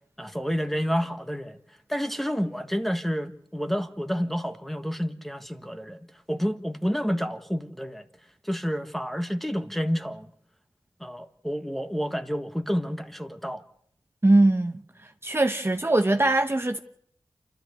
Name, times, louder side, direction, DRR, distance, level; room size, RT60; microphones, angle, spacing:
voice 1, 0.2-1.6 1.9-6.0 6.3-8.1 8.4-10.3 11.0-13.6, equal, ahead, 1.6 m, -29 dB
voice 2, 14.2-14.7 15.2-16.8, right 2 dB, 25° right, 1.0 m, -21 dB
28.5 x 13.0 x 8.1 m
wide cardioid pair, 60°, 9 cm